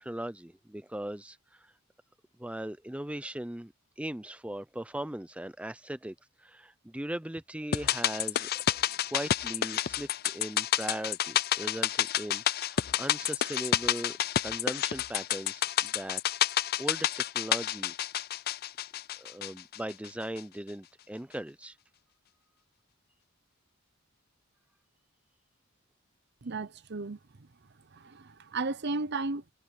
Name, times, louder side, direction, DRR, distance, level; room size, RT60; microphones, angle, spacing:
voice 1, 0.0-1.7 2.4-8.5 9.1-14.2 14.4-17.1 17.3-17.9 19.2-21.8, right 1 dB, 5° right, 0.5 m, -39 dB
sound 1, 7.7-20.1 20.4-20.5, left 11 dB, 45° left, 0.4 m, -30 dB
voice 2, 26.4-27.5 27.9-29.5, right 3 dB, 50° right, 0.8 m, -35 dB
head